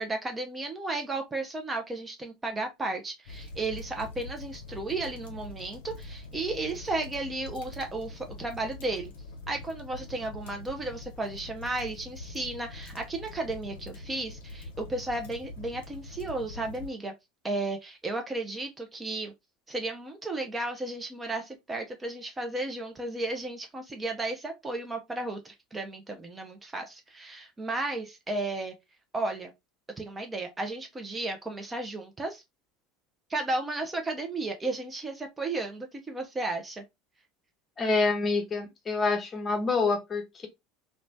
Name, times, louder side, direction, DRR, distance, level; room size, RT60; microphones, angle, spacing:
voice 1, 0.0-9.1 9.5-17.1 17.4-19.3 19.7-28.7 29.1-29.5 30.0-32.4 33.3-36.8, right 2 dB, 15° right, 0.5 m, -34 dB
sound 1, 3.3-16.9, left 2 dB, 65° left, 0.6 m, -44 dB
voice 2, 37.8-40.5, left 3 dB, 25° left, 0.7 m, -27 dB
3.0 x 2.1 x 2.5 m
figure-of-eight pair, 70°, 0 cm